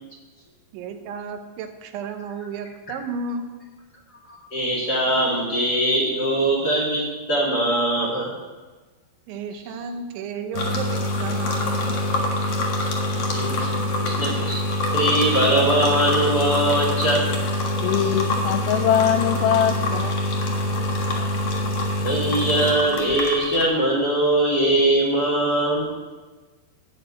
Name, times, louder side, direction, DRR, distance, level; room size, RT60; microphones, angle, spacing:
voice 1, 0.7-3.4 9.3-12.6, right 5 dB, 90° right, 6 dB, 3.3 m, -33 dB
voice 2, 4.5-8.3 13.3-13.7 14.0-17.3 22.0-25.9, right 1 dB, 30° left, -4 dB, 2.1 m, -21 dB
sound 1, 10.5-23.6, left 1 dB, 65° left, 1.5 m, -25 dB
voice 3, 17.8-20.1, left 10 dB, 85° left, 9 dB, 2.4 m, -22 dB
13.5 x 5.2 x 8.6 m, 1.3 s
omnidirectional pair, 5.2 m